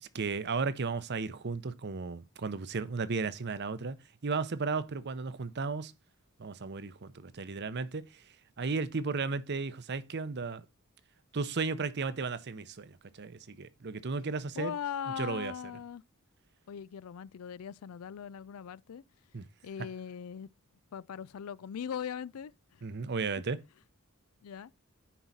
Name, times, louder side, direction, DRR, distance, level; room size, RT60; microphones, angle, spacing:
voice 1, 0.0-4.0 4.2-5.9 6.4-8.2 8.6-10.6 11.3-14.8 15.2-15.5 19.3-19.5 22.8-23.6, right 4 dB, 50° right, 0.7 m, -34 dB
voice 2, 14.6-16.0 16.7-19.0 19.6-20.5 20.9-22.8 24.4-24.7, left 8 dB, 90° left, 0.4 m, -40 dB
10.0 x 4.7 x 4.1 m
head